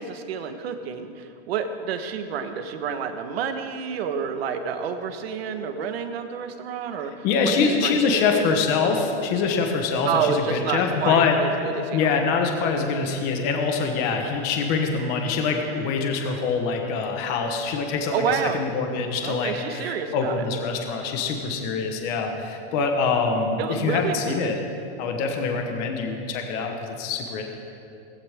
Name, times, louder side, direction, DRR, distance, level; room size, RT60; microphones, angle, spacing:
voice 1, 0.0-7.3 7.6-8.4 10.0-12.1 14.1-14.4 18.1-18.6 19.2-20.4 23.6-24.6, right 6 dB, 70° right, 7 dB, 1.4 m, -29 dB
voice 2, 7.2-11.4 11.9-18.2 18.5-24.6 25.0-27.4, left 5 dB, 30° left, 3 dB, 1.2 m, -24 dB
19.0 x 16.0 x 3.6 m, 2.7 s
supercardioid pair, 180°, 32 cm